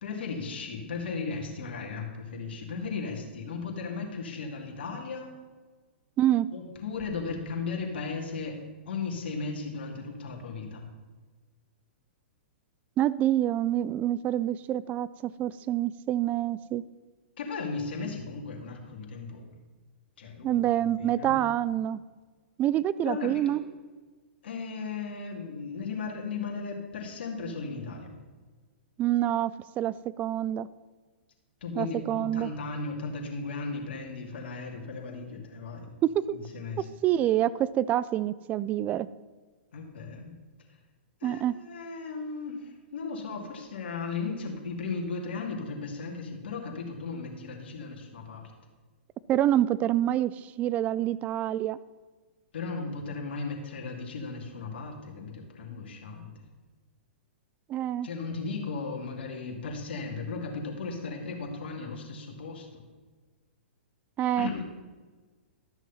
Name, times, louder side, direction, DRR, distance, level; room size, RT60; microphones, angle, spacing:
voice 1, 0.0-5.3 6.5-8.6 8.9-10.9 17.4-19.4 20.2-21.4 23.0-23.6 24.4-28.1 31.6-35.9 36.3-36.9 39.7-40.3 41.2-48.5 52.5-56.3 58.0-62.8 64.4-64.6, left 4 dB, 65° left, 2 dB, 2.4 m, -36 dB
voice 2, 6.2-6.5 13.0-16.8 20.4-22.0 22.6-23.6 29.0-30.7 31.8-32.5 36.0-36.2 37.0-39.1 41.2-41.5 49.3-51.8 57.7-58.1 64.2-64.5, right 12 dB, 25° right, 18 dB, 0.4 m, -27 dB
13.0 x 6.3 x 5.6 m, 1.4 s
hypercardioid pair, 120°, 6 cm